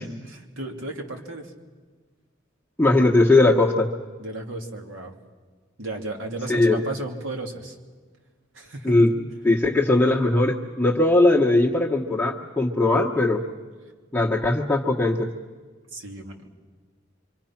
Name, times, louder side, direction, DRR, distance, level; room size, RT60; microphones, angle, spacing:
voice 1, 0.0-1.5 4.2-5.1 5.8-7.8 8.5-9.1 15.9-16.5, right 2 dB, 85° right, 2 dB, 2.9 m, -34 dB
voice 2, 2.8-3.9 6.5-6.8 8.8-9.1 9.4-13.4 14.1-15.3, left 2 dB, 10° left, -2 dB, 1.3 m, -19 dB
26.5 x 25.5 x 5.9 m, 1.5 s
head